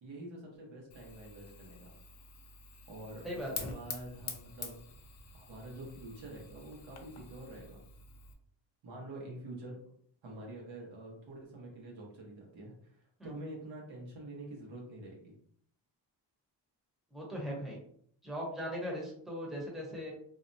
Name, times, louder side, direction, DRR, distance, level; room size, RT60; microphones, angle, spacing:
voice 1, 0.0-1.9 2.9-3.3 3.5-4.8 5.3-7.8 8.8-9.8 10.2-12.7 13.2-15.3, right 1 dB, 80° right, -2 dB, 1.1 m, -46 dB
Fire, 0.9-8.3, left 5 dB, 40° left, 0.4 m, -47 dB
voice 2, 3.2-3.7 13.2-13.3 17.1-17.8 18.2-20.1, equal, ahead, -3 dB, 0.8 m, -39 dB
2.7 x 2.1 x 2.6 m, 0.63 s
cardioid pair, 100°, 45 cm